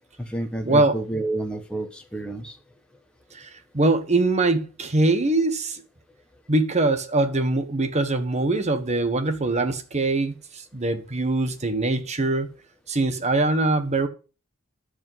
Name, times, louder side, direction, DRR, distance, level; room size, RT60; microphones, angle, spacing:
voice 1, 0.2-2.5, right 2 dB, 5° left, 1.5 m, -30 dB
voice 2, 3.7-5.8 6.5-12.5 12.9-14.1, right 2 dB, 35° right, 1.3 m, -22 dB
13.0 x 5.1 x 5.7 m
head